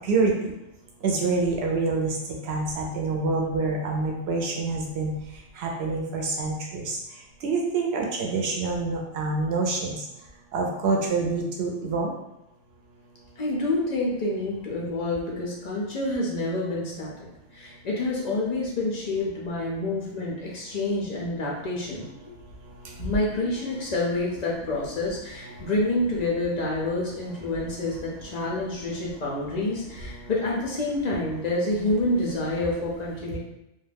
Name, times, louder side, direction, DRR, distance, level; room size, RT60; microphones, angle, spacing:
voice 1, 1.0-2.1 2.5-5.1 5.6-6.5 7.4-9.8 10.5-12.1, right 3 dB, 60° right, 0 dB, 0.8 m, -26 dB
voice 2, 13.4-17.1 17.5-22.1 23.0-33.4, left 2 dB, 65° left, -4 dB, 0.4 m, -28 dB
2.4 x 2.3 x 3.3 m, 0.88 s
omnidirectional pair, 1.3 m